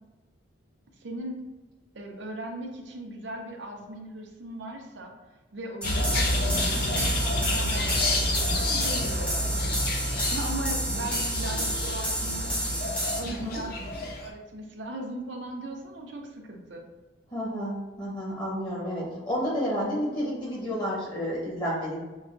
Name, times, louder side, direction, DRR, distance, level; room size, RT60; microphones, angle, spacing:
voice 1, 1.0-1.4 1.9-5.1 5.5-9.8 10.3-12.5 13.1-16.9, right 1 dB, 75° right, 1 dB, 0.7 m, -38 dB
sound 1, 5.8-14.3, left 1 dB, 50° left, 0.5 m, -29 dB
sound 2, 5.8-13.2, equal, 5° left, 0.6 m, -31 dB
voice 2, 13.3-13.6 17.3-22.0, equal, 20° left, -6 dB, 1.0 m, -31 dB
6.2 x 2.3 x 2.5 m, 1.2 s
head